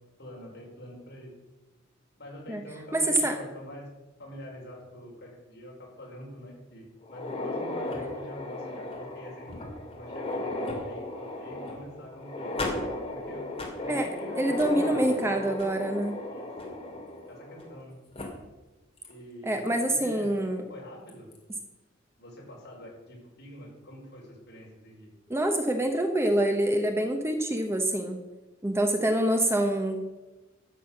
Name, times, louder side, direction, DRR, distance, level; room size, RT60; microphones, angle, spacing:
voice 1, 0.2-1.3 2.2-3.9 4.2-12.6 13.1-13.5 13.8-15.6 16.2-16.7 17.3-18.0 19.1-20.4 20.7-21.3 22.2-25.1, equal, 55° left, -3 dB, 5.0 m, -45 dB
voice 2, 2.9-3.4 13.9-14.1 14.3-16.2 19.4-20.6 25.3-28.2 28.6-30.1, right 1 dB, 15° right, 5 dB, 1.0 m, -26 dB
sound 1, 7.0-17.8 18.1-18.2 19.0-19.1 19.7-19.8 21.1-21.4, left 2 dB, 30° left, 2.7 m, -35 dB
12.5 x 7.9 x 6.4 m, 1.1 s
head